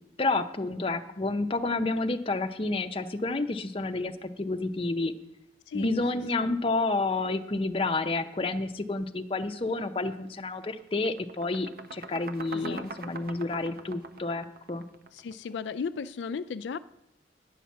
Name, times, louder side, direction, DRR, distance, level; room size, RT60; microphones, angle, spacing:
voice 1, 0.2-5.1 5.7-14.8, left 2 dB, 30° left, 7 dB, 0.6 m, -30 dB
voice 2, 5.7-6.0 6.4-6.5 12.5-13.1 15.1-16.8, left 5 dB, 80° left, 13 dB, 0.4 m, -36 dB
sound 1, 9.9-10.1 10.5-15.4, right 4 dB, 55° right, 0.8 m, -43 dB
10.0 x 5.8 x 8.4 m, 0.86 s
head